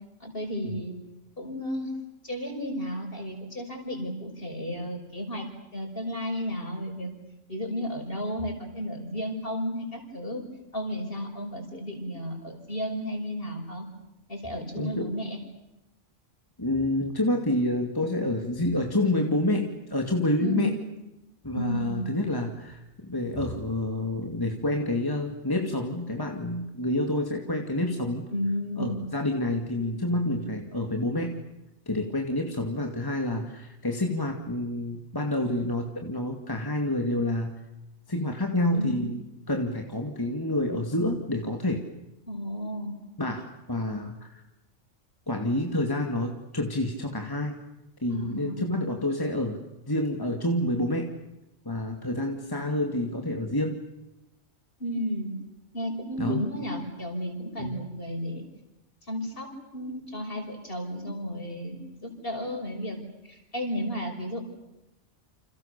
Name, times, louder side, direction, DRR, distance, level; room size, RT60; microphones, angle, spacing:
voice 1, 0.2-1.0 1.4-1.9 2.2-7.1 7.5-10.4 10.7-13.9 14.3-15.4 20.4-20.9 21.5-22.1 28.3-29.0 38.7-39.0 42.3-43.0 48.1-48.7 54.8-55.3 55.7-58.4 59.0-63.0 63.2-64.4, equal, 45° left, 3 dB, 6.1 m, -33 dB
voice 2, 14.8-15.1 16.6-20.7 21.4-28.2 28.8-31.4 31.9-37.6 38.1-39.2 39.5-41.8 43.2-44.4 45.3-47.5 48.0-49.6 49.9-51.1 51.6-53.8 56.2-56.4 57.6-57.8, left 1 dB, 15° left, 3 dB, 2.4 m, -28 dB
29.5 x 28.0 x 6.9 m, 0.93 s
omnidirectional pair, 1.3 m